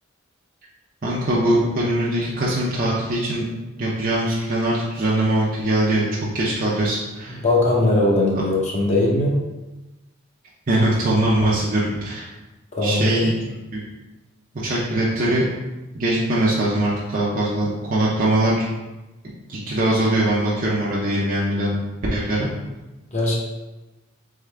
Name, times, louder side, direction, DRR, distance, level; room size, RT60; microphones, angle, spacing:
voice 1, 1.0-3.4 3.8-7.4 10.7-12.2 12.8-13.3 13.7-13.8 14.6-15.4 15.9-18.5 19.5-21.8 22.1-22.5, right 1 dB, 45° right, -6 dB, 0.7 m, -21 dB
voice 2, 7.4-9.4 12.7-13.3 23.1-23.4, left 2 dB, 35° left, -3 dB, 0.8 m, -19 dB
3.7 x 3.7 x 3.3 m, 1.1 s
head